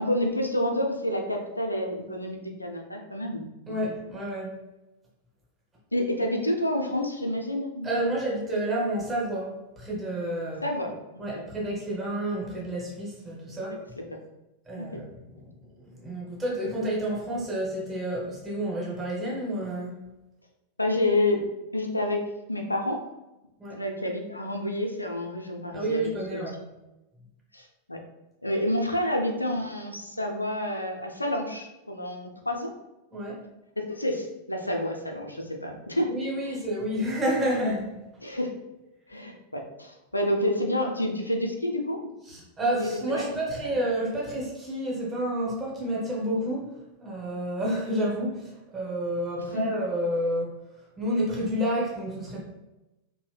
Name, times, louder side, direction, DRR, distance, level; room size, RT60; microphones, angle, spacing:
voice 1, 0.0-3.5 5.9-7.9 10.6-11.4 14.0-14.1 14.8-15.0 20.8-21.4 21.7-22.2 22.5-23.0 23.7-26.4 27.5-28.0 28.4-32.7 33.8-36.1 36.4-36.6 38.2-38.5 39.1-42.1 42.7-43.3 43.6-43.7 49.5-49.6, left 1 dB, 85° left, 2 dB, 0.5 m, -29 dB
voice 2, 3.7-4.6 7.8-10.6 11.2-13.8 14.7-15.1 15.9-20.0 23.6-23.8 25.7-26.6 33.1-33.4 36.1-37.9 42.3-46.7 47.0-50.5 51.0-52.4, right 1 dB, 20° right, -4 dB, 1.0 m, -29 dB
2.7 x 2.7 x 3.2 m, 0.99 s
figure-of-eight pair, 90°, 0 cm